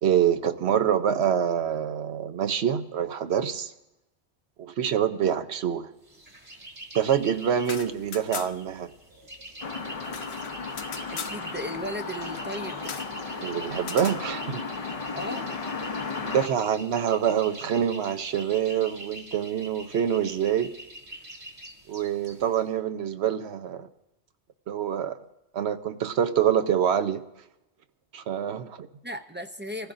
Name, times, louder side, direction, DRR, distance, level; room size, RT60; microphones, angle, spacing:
voice 1, 0.0-3.7 4.6-5.9 6.9-8.9 13.4-14.7 16.3-20.7 21.9-23.9 24.7-25.2 25.5-27.2 28.1-28.9, right 9 dB, 70° right, 1.0 m, -26 dB
sound 1, 6.0-22.7, right 1 dB, 45° right, 1.9 m, -44 dB
sound 2, 7.6-8.8 9.0-9.1 9.4-11.4 12.8-13.1 13.8-14.2, left 7 dB, 70° left, 1.0 m, -39 dB
sound 3, 9.6-16.5, left 4 dB, 40° left, 0.7 m, -35 dB
voice 2, 11.1-13.0 15.1-15.5 29.0-29.9, equal, 15° right, 0.4 m, -36 dB
25.5 x 15.0 x 2.6 m
omnidirectional pair, 1.2 m